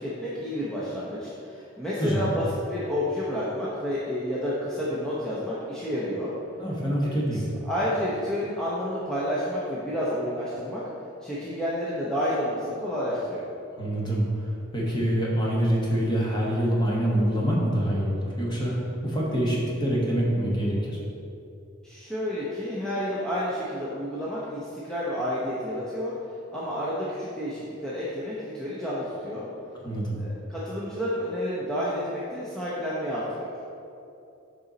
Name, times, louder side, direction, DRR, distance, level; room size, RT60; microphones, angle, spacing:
voice 1, 0.0-6.3 7.0-10.8 11.2-13.5 21.8-26.1 26.5-29.5 30.2-33.5, equal, 5° left, -9 dB, 0.7 m, -30 dB
voice 2, 2.0-2.3 6.6-7.4 13.8-14.2 14.7-18.7 19.0-21.0 29.8-30.2, equal, 20° left, -4 dB, 1.3 m, -25 dB
6.8 x 5.4 x 4.0 m, 2.8 s
head